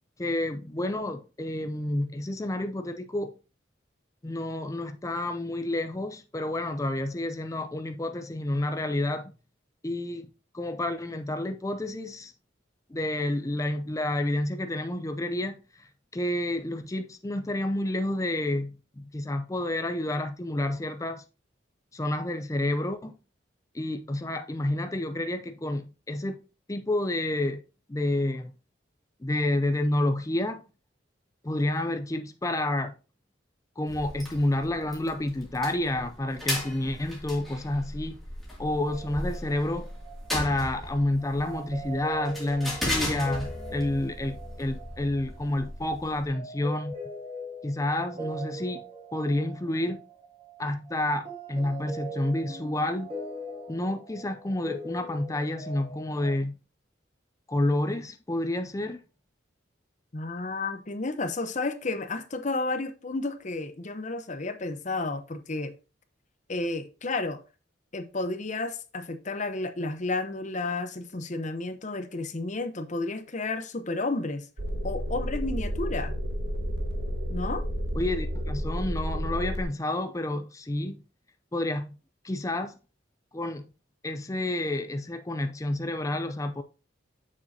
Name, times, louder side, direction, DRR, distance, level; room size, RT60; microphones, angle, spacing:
voice 1, 0.2-3.3 4.2-9.3 9.8-12.3 12.9-21.2 21.9-23.1 23.7-26.4 26.7-27.6 27.9-28.5 29.2-30.6 31.4-32.9 33.8-38.2 38.6-39.9 40.3-46.9 47.6-48.8 49.1-50.0 50.6-53.1 53.7-56.5 57.5-59.0 77.9-81.0 81.5-82.0 82.2-82.7 83.3-83.7 84.0-86.6, left 1 dB, 15° left, 0.5 m, -29 dB
sound 1, 33.9-46.3, left 1 dB, ahead, 2.3 m, -37 dB
sound 2, 38.9-56.3, right 1 dB, 30° right, 2.1 m, -41 dB
voice 2, 60.1-65.7 66.5-67.4 67.9-74.5 74.8-76.1 77.3-77.7, left 3 dB, 40° left, 0.8 m, -32 dB
sound 3, 74.6-79.6, equal, 60° right, 1.3 m, -31 dB
7.3 x 6.5 x 2.7 m
head